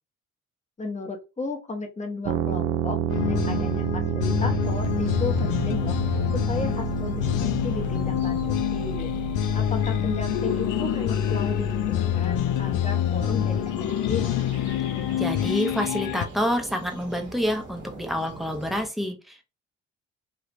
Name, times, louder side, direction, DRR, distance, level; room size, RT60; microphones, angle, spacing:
voice 1, 0.8-3.0 3.2-6.0 6.3-9.1 9.5-14.3, left 3 dB, 25° left, 3 dB, 1.0 m, -34 dB
sound 1, 2.2-13.9, right 7 dB, 75° right, 0.6 m, -31 dB
sound 2, 3.1-16.3, left 11 dB, 85° left, 0.5 m, -26 dB
sound 3, 4.6-18.9, right 2 dB, 40° right, 1.3 m, -42 dB
voice 2, 15.2-19.4, equal, ahead, 4 dB, 0.8 m, -28 dB
3.4 x 2.3 x 3.0 m, 0.27 s
cardioid pair, 90°, 30 cm